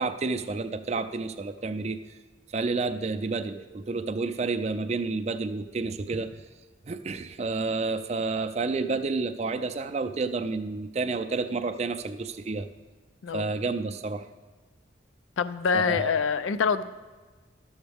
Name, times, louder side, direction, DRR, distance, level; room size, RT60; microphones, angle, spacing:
voice 1, 0.0-2.0 2.5-6.3 6.9-12.7 13.3-14.3 15.7-16.1, right 3 dB, 35° right, 9 dB, 0.4 m, -30 dB
voice 2, 15.4-16.8, left 6 dB, 85° left, 13 dB, 0.4 m, -25 dB
11.5 x 7.2 x 3.4 m, 1.3 s
head